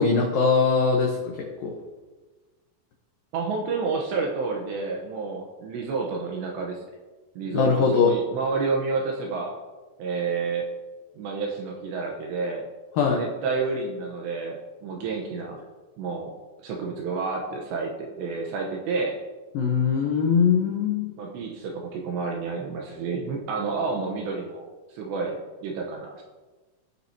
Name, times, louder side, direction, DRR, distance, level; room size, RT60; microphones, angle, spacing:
voice 1, 0.0-1.8 7.5-8.1 13.0-13.2 19.5-21.1, left 5 dB, 85° left, 0 dB, 2.0 m, -22 dB
voice 2, 3.3-6.8 7.4-9.6 10.0-10.7 11.1-12.6 13.1-15.6 16.0-16.3 16.6-19.2 21.2-26.2, right 4 dB, 75° right, 0 dB, 2.9 m, -30 dB
19.0 x 7.5 x 2.8 m, 1.3 s
omnidirectional pair, 5.7 m